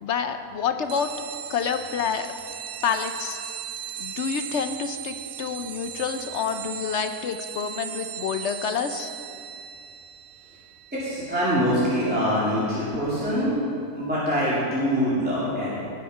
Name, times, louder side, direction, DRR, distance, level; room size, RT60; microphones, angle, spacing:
voice 1, 0.0-1.1 1.5-2.3 2.8-3.4 4.0-9.1, left 7 dB, 60° left, 8 dB, 0.8 m, -28 dB
sound 1, 0.9-13.0, right 10 dB, 90° right, 1.1 m, -38 dB
voice 2, 10.9-13.6 13.9-15.7, equal, 5° right, -10 dB, 2.5 m, -24 dB
18.5 x 6.5 x 5.5 m, 2.6 s
omnidirectional pair, 1.6 m